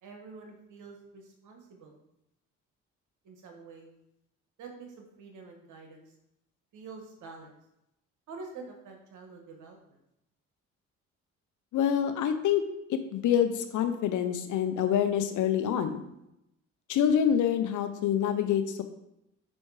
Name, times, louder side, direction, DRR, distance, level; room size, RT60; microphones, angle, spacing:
voice 1, 0.0-2.0 3.2-3.9 4.6-6.1 6.7-7.6 8.3-10.0, right 4 dB, 80° right, 2 dB, 1.4 m, -47 dB
voice 2, 11.7-12.6 12.9-16.0 16.9-18.8, left 9 dB, 80° left, 8 dB, 0.7 m, -26 dB
6.3 x 5.4 x 4.8 m, 0.84 s
cardioid pair, 90°, 30 cm